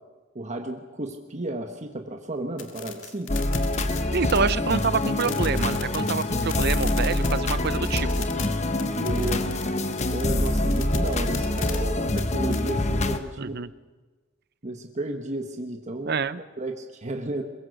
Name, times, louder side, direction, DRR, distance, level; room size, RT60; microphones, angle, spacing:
voice 1, 0.3-3.3 4.7-4.9 5.2-5.4 9.0-9.5 10.1-13.5 14.6-16.2 16.6-17.4, right 2 dB, 40° right, 4 dB, 1.4 m, -33 dB
sound 1, 2.6-12.7, left 9 dB, 85° left, 2.1 m, -39 dB
sound 2, 3.3-13.2, left 1 dB, 35° left, 1.2 m, -25 dB
voice 2, 4.1-8.3 13.4-13.7 16.1-16.4, right 5 dB, 55° right, 15 dB, 0.8 m, -27 dB
22.5 x 22.0 x 6.6 m, 1.3 s
head